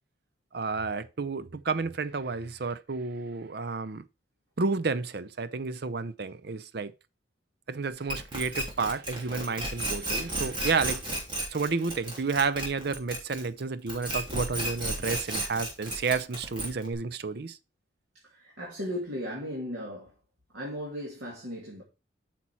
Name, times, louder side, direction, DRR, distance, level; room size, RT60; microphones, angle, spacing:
voice 1, 0.5-4.1 4.6-6.9 7.7-11.0 11.5-17.6, right 4 dB, 55° right, 0.6 m, -31 dB
sound 1, 8.1-13.6 13.9-16.9, right 1 dB, 25° right, 3.1 m, -33 dB
voice 2, 18.2-20.1 20.5-21.8, equal, 80° right, 2.7 m, -36 dB
8.3 x 6.0 x 4.4 m
head